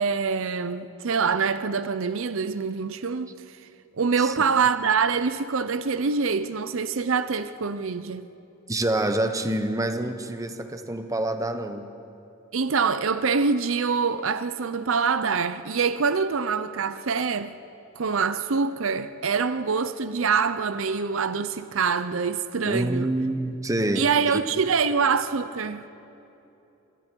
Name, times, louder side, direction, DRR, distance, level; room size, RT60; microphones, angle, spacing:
voice 1, 0.0-3.3 4.0-8.3 12.5-17.5 17.9-23.1 24.0-25.9, right 5 dB, 65° right, 0.6 m, -25 dB
voice 2, 8.7-11.9 22.6-24.4, right 1 dB, 15° right, 1.0 m, -27 dB
27.0 x 25.5 x 4.6 m
head